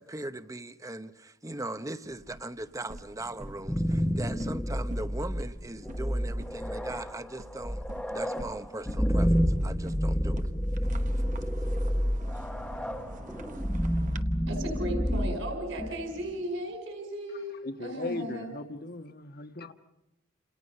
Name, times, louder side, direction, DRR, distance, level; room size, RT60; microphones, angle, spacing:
voice 1, 0.0-7.8 8.1-10.5, right 2 dB, 15° right, 0.9 m, -39 dB
sound 1, 2.0-14.2, right 1 dB, 40° right, 1.1 m, -46 dB
sound 2, 3.4-16.3, equal, 5° left, 1.1 m, -29 dB
voice 2, 14.5-18.5, right 1 dB, 65° right, 5.3 m, -35 dB
voice 3, 17.6-19.7, left 2 dB, 50° left, 1.5 m, -37 dB
30.0 x 27.5 x 5.6 m
head